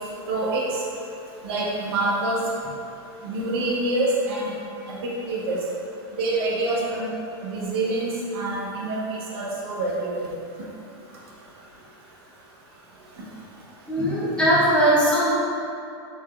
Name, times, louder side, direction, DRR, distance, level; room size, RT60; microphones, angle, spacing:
voice 1, 0.3-0.8 1.4-2.4 3.2-4.5 4.9-5.6 6.2-7.1 7.4-10.1, right 2 dB, 65° right, -5 dB, 0.9 m, -26 dB
voice 2, 13.9-15.3, equal, 5° left, -9 dB, 0.6 m, -19 dB
3.5 x 2.2 x 3.6 m, 2.7 s
supercardioid pair, 150°, 14 cm